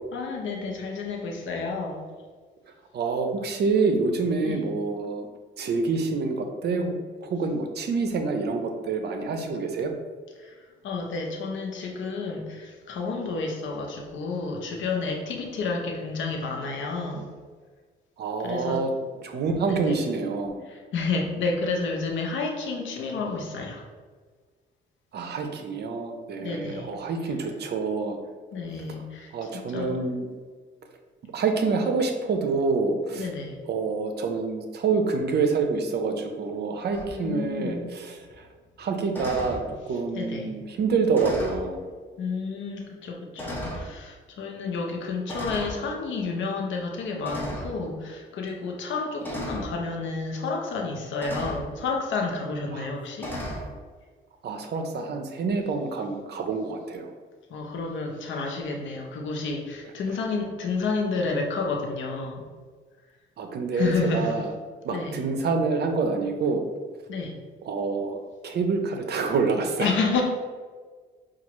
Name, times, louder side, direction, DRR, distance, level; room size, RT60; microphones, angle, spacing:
voice 1, 0.1-2.1 4.4-4.7 10.4-17.3 18.4-18.8 19.7-20.0 20.6-23.8 26.4-26.9 28.5-30.0 33.1-33.6 37.1-37.9 40.1-40.5 42.2-53.3 57.5-62.5 63.7-64.4 64.9-65.3 67.1-67.4 69.8-70.2, left 4 dB, 70° left, 1 dB, 0.8 m, -30 dB
voice 2, 2.9-5.3 5.6-6.9 7.2-9.9 18.2-18.9 19.2-20.6 25.1-28.2 29.3-30.4 31.3-33.3 33.7-38.5 38.8-41.8 52.7-52.9 54.4-57.1 63.4-64.5 64.8-66.6 67.6-68.2 68.4-69.9, right 4 dB, 55° right, 5 dB, 0.6 m, -27 dB
sound 1, 36.9-37.1 39.1-39.6 41.1-41.7 42.5-42.6 43.4-43.9 45.3-45.8 47.2-47.7 49.2-49.7 51.2-51.7 53.2-53.7, equal, 10° left, 1.0 m, -34 dB
5.7 x 2.4 x 3.0 m, 1.5 s
cardioid pair, 90°, 20 cm